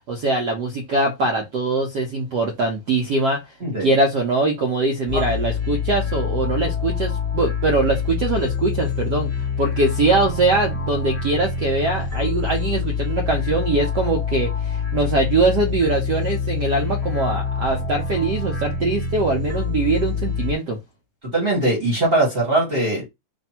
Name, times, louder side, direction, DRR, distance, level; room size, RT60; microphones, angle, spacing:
voice 1, 0.1-3.4 3.8-9.3 9.6-20.8, right 3 dB, 65° right, 1.1 m, -22 dB
sound 1, 5.1-20.5, left 6 dB, 10° left, 1.0 m, -26 dB
voice 2, 21.2-23.1, right 2 dB, 35° right, 1.2 m, -21 dB
3.4 x 2.6 x 4.2 m
omnidirectional pair, 2.4 m